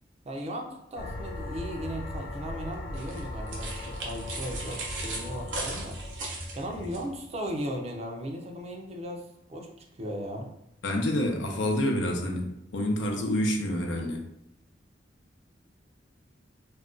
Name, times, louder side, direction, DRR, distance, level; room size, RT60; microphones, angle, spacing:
voice 1, 0.3-6.0 6.5-9.7 10.0-10.5, equal, 35° right, 2 dB, 0.4 m, -37 dB
sound 1, 1.0-7.6, left 1 dB, 45° left, 0.4 m, -38 dB
sound 2, 3.0-7.0, right 2 dB, 80° right, 0.8 m, -38 dB
voice 2, 10.8-14.2, left 1 dB, 90° left, 1 dB, 0.6 m, -28 dB
2.4 x 2.2 x 3.7 m, 0.80 s
head